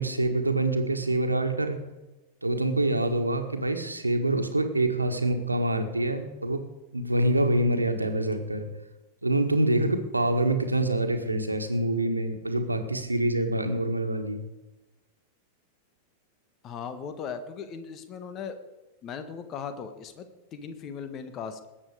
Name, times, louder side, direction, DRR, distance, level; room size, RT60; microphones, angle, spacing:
voice 1, 0.0-1.8 2.4-6.6 6.9-8.7 9.2-14.4, right 1 dB, 85° right, 6 dB, 1.6 m, -26 dB
voice 2, 16.6-18.6 19.0-21.7, left 6 dB, 35° left, 10 dB, 1.5 m, -38 dB
20.5 x 9.0 x 4.9 m, 1.1 s
figure-of-eight pair, 90°, 0 cm